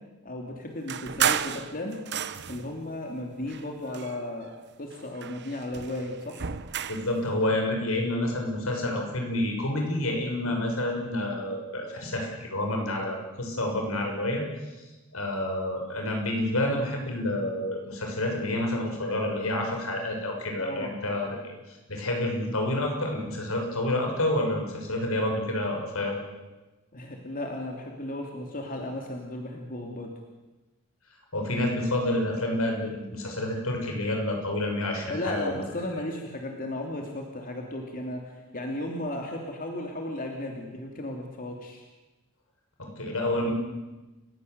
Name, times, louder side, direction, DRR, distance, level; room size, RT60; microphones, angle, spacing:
voice 1, 0.2-1.9 2.5-4.5 4.8-6.4 20.6-21.0 26.9-30.1 35.1-41.8, left 1 dB, 40° left, 1 dB, 3.0 m, -35 dB
sound 1, 0.9-2.7 3.4-4.6 4.9-7.1, right 8 dB, 55° right, 1.0 m, -32 dB
voice 2, 6.9-14.4 15.1-21.4 21.7-26.2 31.3-35.6 43.0-43.5, left 1 dB, 85° left, 2 dB, 6.6 m, -29 dB
30.0 x 16.0 x 8.1 m, 1.1 s
head